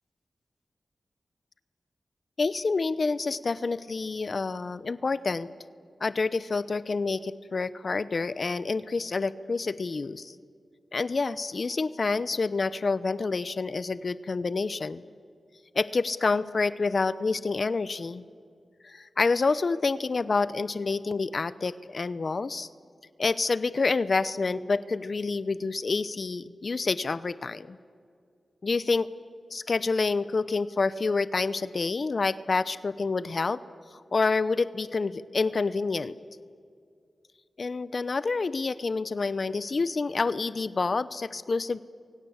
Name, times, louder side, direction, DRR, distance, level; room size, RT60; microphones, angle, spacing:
voice 1, 2.4-5.5 6.0-10.3 10.9-15.0 15.7-18.2 18.8-22.7 23.2-27.8 28.6-29.1 29.5-33.6 33.9-36.2 37.6-41.8, left 4 dB, 60° left, 16 dB, 0.8 m, -28 dB
28.0 x 24.0 x 8.1 m, 2.3 s
cardioid pair, 50°, 0 cm